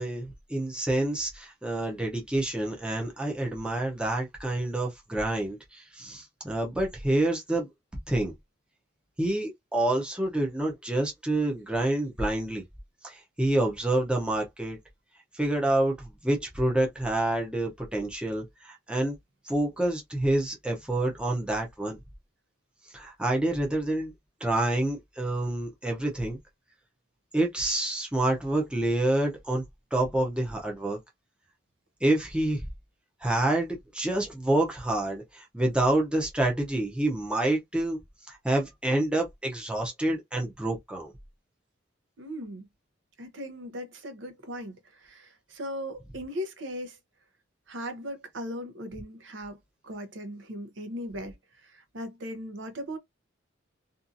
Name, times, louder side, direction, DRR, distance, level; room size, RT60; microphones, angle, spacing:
voice 1, 0.0-7.7 8.1-8.3 9.2-12.6 13.0-14.8 15.3-19.2 19.5-22.0 22.9-24.1 24.4-26.4 27.3-29.6 29.9-31.0 32.0-32.6 33.2-38.0 38.3-41.1, right 1 dB, 5° right, 0.6 m, -28 dB
voice 2, 42.2-42.7 43.2-47.0 47.7-49.6 49.8-53.0, equal, 65° right, 0.7 m, -38 dB
2.6 x 2.4 x 2.5 m
head